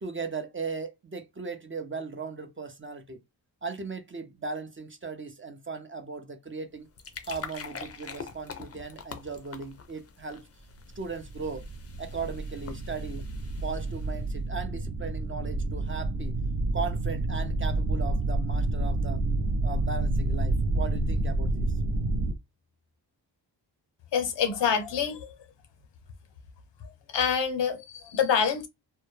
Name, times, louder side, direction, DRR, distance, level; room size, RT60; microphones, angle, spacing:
voice 1, 0.0-3.2 3.6-6.9 7.2-10.5 11.0-11.6 12.0-13.3 13.6-16.4 16.7-19.2 19.6-21.7, right 4 dB, 30° right, 0.5 m, -37 dB
sound 1, 6.7-14.3, left 5 dB, 35° left, 0.5 m, -45 dB
sound 2, 10.9-22.3, right 2 dB, 75° right, 0.6 m, -29 dB
voice 2, 24.1-25.3 27.1-28.7, left 7 dB, 75° left, 0.7 m, -26 dB
2.1 x 2.1 x 3.0 m
cardioid pair, 70°, 44 cm